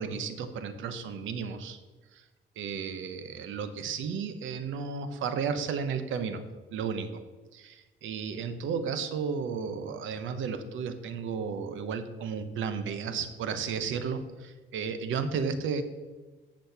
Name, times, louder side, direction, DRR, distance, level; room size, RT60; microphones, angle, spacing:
voice 1, 0.0-1.8 2.6-6.4 6.7-7.2 7.5-15.8, right 6 dB, 80° right, 10 dB, 0.9 m, -33 dB
8.3 x 6.2 x 5.8 m, 1.3 s
cardioid pair, 90°, 20 cm